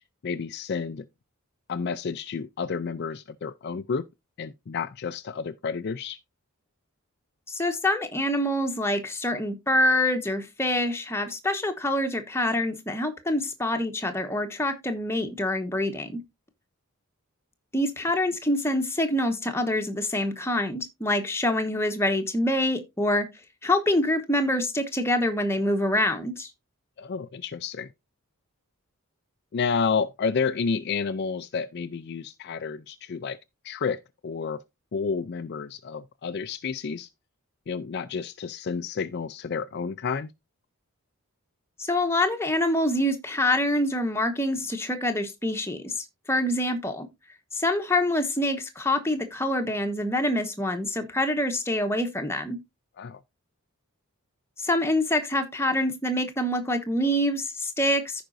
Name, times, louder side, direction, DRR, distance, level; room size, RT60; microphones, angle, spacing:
voice 1, 0.2-1.1 1.7-4.0 4.4-6.2 27.0-27.9 29.5-33.4 33.6-34.6 34.9-37.1 37.7-40.3 53.0-53.2, left 5 dB, 50° left, 0.4 m, -30 dB
voice 2, 7.5-16.2 17.7-23.2 23.6-26.5 41.8-47.1 47.5-52.6 54.6-58.2, left 1 dB, 10° left, 1.1 m, -26 dB
15.0 x 5.0 x 2.6 m
head